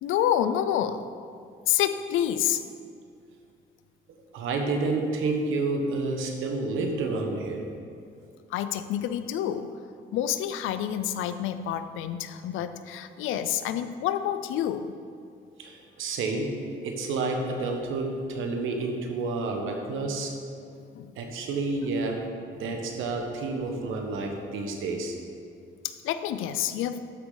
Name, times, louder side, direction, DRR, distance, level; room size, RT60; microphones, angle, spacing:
voice 1, 0.0-1.1 1.7-2.7 8.5-9.7 10.1-14.9 20.9-21.1 25.8-27.0, left 10 dB, 90° left, 11 dB, 0.5 m, -28 dB
voice 2, 4.3-7.7 15.6-16.6 16.8-20.3 21.2-22.3 22.6-25.1, right 3 dB, 85° right, 3 dB, 1.2 m, -29 dB
12.5 x 6.1 x 4.0 m, 2.3 s
cardioid pair, 90°, 20 cm